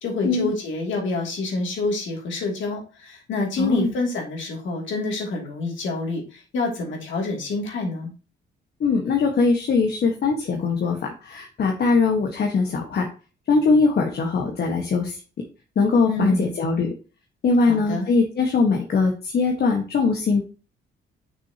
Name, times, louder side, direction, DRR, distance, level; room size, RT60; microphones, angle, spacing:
voice 1, 0.0-8.1 16.1-16.5 17.6-18.1, left 2 dB, 75° left, 0 dB, 2.5 m, -27 dB
voice 2, 3.6-3.9 8.8-13.1 13.5-15.2 15.7-16.9 17.4-20.4, left 4 dB, 55° left, 2 dB, 1.4 m, -21 dB
6.3 x 6.3 x 2.8 m, 0.34 s
cardioid pair, 90°, 20 cm